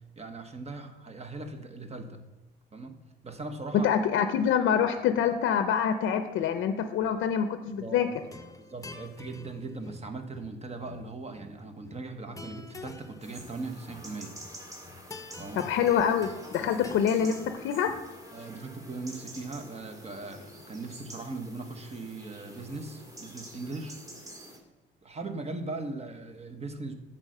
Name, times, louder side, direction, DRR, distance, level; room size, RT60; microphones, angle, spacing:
voice 1, 0.2-2.2 2.7-3.9 7.8-8.1 8.6-14.4 15.4-15.7 16.6-16.7 18.3-24.0 25.0-26.9, right 3 dB, 30° right, 7 dB, 1.0 m, -39 dB
voice 2, 3.8-8.1 15.6-17.9, left 8 dB, 80° left, 8 dB, 0.5 m, -26 dB
sound 1, 8.1-18.2, left 3 dB, 15° left, 0.8 m, -47 dB
sound 2, 13.2-24.6, right 1 dB, 15° right, 1.9 m, -48 dB
8.3 x 3.9 x 6.6 m, 1.0 s
cardioid pair, 90°, 20 cm